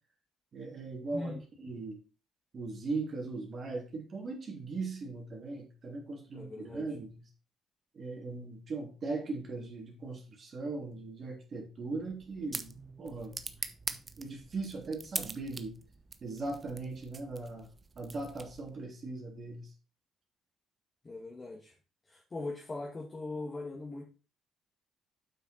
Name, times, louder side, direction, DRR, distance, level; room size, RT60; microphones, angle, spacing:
voice 1, 0.5-2.0 2.5-7.2 7.9-13.5 13.9-15.7 16.2-17.7 17.9-19.7, right 3 dB, 45° right, 1 dB, 3.1 m, -39 dB
voice 2, 1.1-1.4 6.3-6.8 21.0-21.7 22.1-24.0, left 2 dB, 30° left, -2 dB, 2.1 m, -40 dB
sound 1, 11.9-18.8, right 4 dB, 30° right, 0.9 m, -43 dB
8.1 x 5.9 x 4.4 m, 0.33 s
cardioid pair, 90°, 0 cm